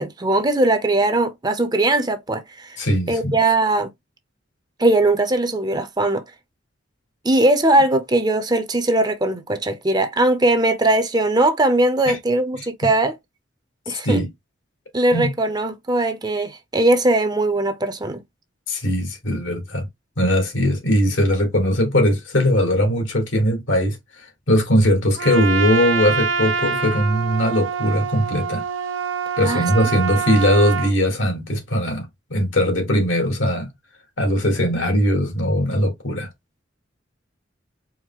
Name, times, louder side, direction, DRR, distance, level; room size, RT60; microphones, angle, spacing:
voice 1, 0.0-2.8 3.1-3.9 4.8-6.2 7.2-13.1 13.9-14.2 14.9-18.2 29.4-29.6, right 2 dB, 20° right, 0.6 m, -19 dB
voice 2, 2.8-3.4 12.1-12.2 12.6-12.7 14.0-14.3 15.1-15.3 18.7-19.9 20.2-28.6 29.4-33.7 34.2-36.3, equal, 75° left, 1.6 m, -20 dB
Trumpet, 25.2-30.9, right 5 dB, 90° right, 0.7 m, -25 dB
4.6 x 2.1 x 3.6 m
head